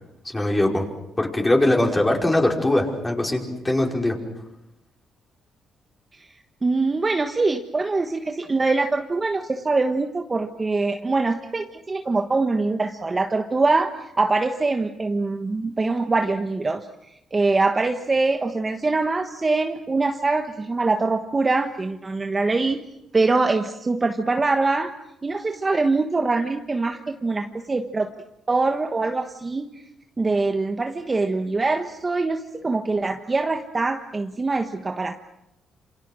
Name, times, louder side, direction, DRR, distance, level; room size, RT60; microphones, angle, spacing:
voice 1, 0.3-0.9 1.2-4.2, left 1 dB, 15° left, 1 dB, 5.3 m, -21 dB
voice 2, 6.6-16.9 17.3-22.8 23.1-24.9 25.2-28.1 28.5-29.7 30.2-35.1, right 3 dB, 25° right, 6 dB, 1.3 m, -23 dB
28.0 x 26.0 x 6.3 m, 0.87 s
cardioid pair, 90°, 0 cm